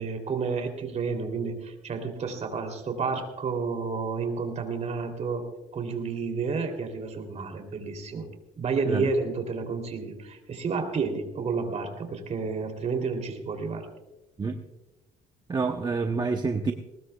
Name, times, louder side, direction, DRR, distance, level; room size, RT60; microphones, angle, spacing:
voice 1, 0.0-5.4 5.7-8.3 8.6-13.9, right 4 dB, 40° right, 5 dB, 3.1 m, -30 dB
voice 2, 15.5-16.7, right 4 dB, 25° right, 5 dB, 0.9 m, -27 dB
20.0 x 19.5 x 2.3 m, 1.0 s
cardioid pair, 110°, 17 cm